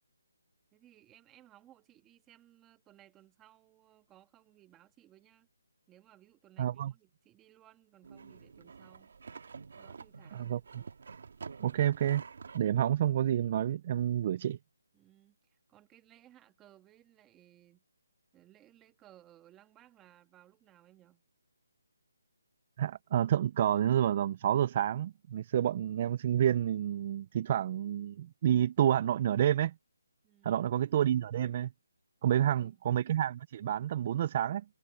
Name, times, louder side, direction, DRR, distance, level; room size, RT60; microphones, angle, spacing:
voice 1, 0.7-5.5 5.9-9.1 9.8-10.5 14.9-17.8 18.3-21.2 30.2-30.8 32.3-32.8, right 13 dB, 10° right, 1.7 m, -61 dB
voice 2, 6.6-6.9 10.3-10.8 11.6-12.2 12.5-14.6 22.8-29.7 30.4-31.7 32.2-34.6, right 10 dB, 25° right, 0.3 m, -29 dB
sound 1, 8.0-12.7, right 5 dB, 55° right, 1.7 m, -48 dB
hypercardioid pair, 170°, 0 cm